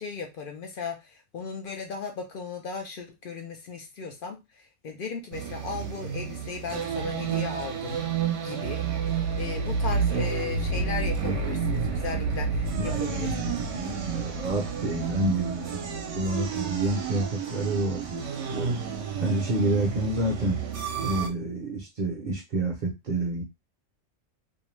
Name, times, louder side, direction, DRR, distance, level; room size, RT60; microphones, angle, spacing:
voice 1, 0.0-4.4 4.8-8.0 8.4-13.5, left 5 dB, 60° left, 0.6 m, -36 dB
sound 1, 5.3-21.3, right 5 dB, 75° right, 0.9 m, -30 dB
voice 2, 12.7-18.2 18.5-18.8 19.2-20.6 21.0-23.4, right 2 dB, 50° right, 0.7 m, -29 dB
2.6 x 2.1 x 3.0 m
omnidirectional pair, 1.2 m